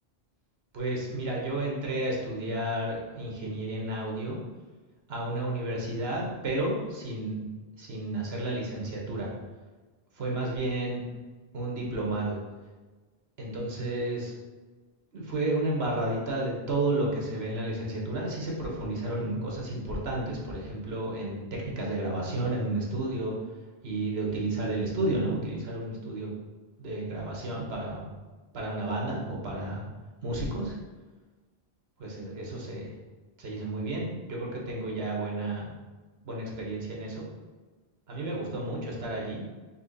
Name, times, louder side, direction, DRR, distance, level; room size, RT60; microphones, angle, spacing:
voice 1, 0.7-4.4 5.1-7.4 7.8-9.3 10.1-11.0 11.5-12.4 13.4-14.3 15.1-23.3 23.8-26.3 26.8-28.0 28.5-29.8 30.2-30.8 32.0-32.9 33.4-35.7 36.2-37.2 38.1-39.4, right 2 dB, 75° right, -2 dB, 1.3 m, -31 dB
4.3 x 2.8 x 4.0 m, 1.3 s
omnidirectional pair, 1.0 m